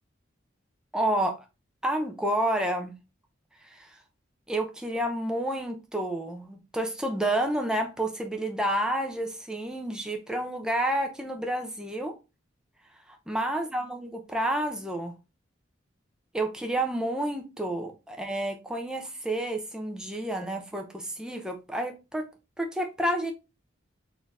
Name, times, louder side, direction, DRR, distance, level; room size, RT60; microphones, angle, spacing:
voice 1, 0.9-1.4 1.8-2.9 3.6-4.0 4.5-12.1 13.1-15.1 16.3-22.2 22.6-23.3, right 1 dB, 5° right, 0.6 m, -30 dB
4.2 x 2.8 x 3.5 m
head